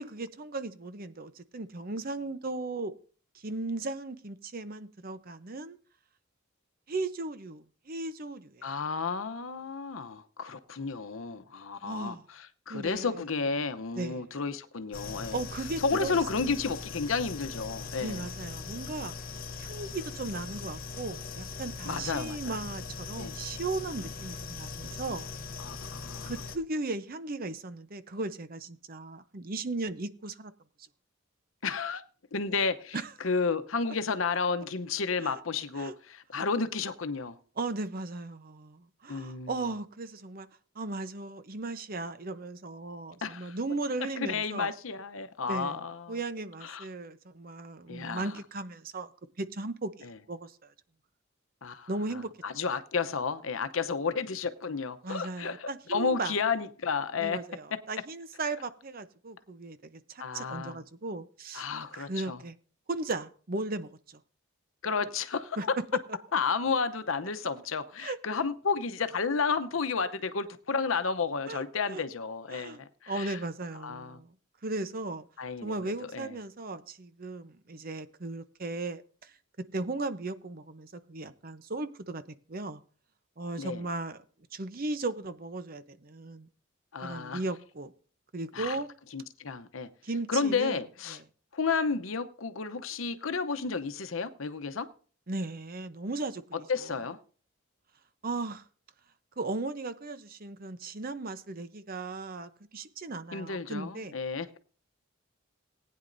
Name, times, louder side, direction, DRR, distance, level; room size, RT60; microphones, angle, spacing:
voice 1, 0.0-2.9 3.3-5.8 6.9-8.7 11.8-12.2 12.7-13.2 14.0-14.3 15.3-16.2 16.5-16.6 18.0-19.1 19.6-25.3 26.2-30.5 32.9-33.1 35.2-35.4 35.8-35.9 36.4-36.5 37.6-40.5 40.8-44.7 45.5-45.8 46.1-49.1 49.4-50.7 51.9-52.3 55.0-56.3 57.2-61.7 61.9-62.5 62.9-64.2 65.6-65.7 68.0-68.2 71.5-72.0 72.5-74.3 74.6-75.2 75.6-79.3 79.7-82.2 82.5-82.8 83.4-84.2 84.5-86.5 87.0-87.9 88.3-88.9 90.0-90.8 91.1-91.2 95.3-96.4 96.8-96.9 98.2-98.6 99.4-104.1, right 2 dB, 45° right, 0.8 m, -36 dB
voice 2, 8.6-15.4 15.8-18.3 21.9-22.6 23.2-23.4 25.6-26.3 31.6-32.0 32.3-37.4 39.1-39.6 43.2-43.6 44.0-46.2 46.6-46.9 47.9-48.3 50.0-50.1 51.6-57.4 57.7-57.8 60.2-60.8 61.5-62.4 64.8-65.8 66.3-73.4 73.8-74.2 75.4-76.3 83.6-83.8 86.9-87.4 88.5-88.8 89.1-89.9 90.3-91.2 91.5-94.9 96.5-97.2 103.3-104.5, left 5 dB, 80° left, 0.8 m, -32 dB
sound 1, 14.9-26.6, left 4 dB, 45° left, 0.9 m, -40 dB
19.0 x 9.5 x 2.6 m
head